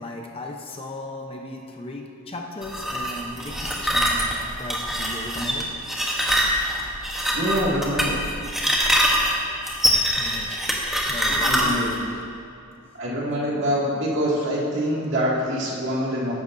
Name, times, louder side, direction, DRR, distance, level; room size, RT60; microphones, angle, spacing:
voice 1, 0.0-5.7 10.2-10.6 11.1-12.2, left 1 dB, 25° left, 1 dB, 0.7 m, -36 dB
sound 1, 2.6-12.0, equal, ahead, 1.0 m, -24 dB
voice 2, 7.3-8.2 11.2-11.9 13.0-16.3, equal, 55° right, -5 dB, 2.1 m, -25 dB
14.5 x 10.5 x 2.6 m, 2.4 s
head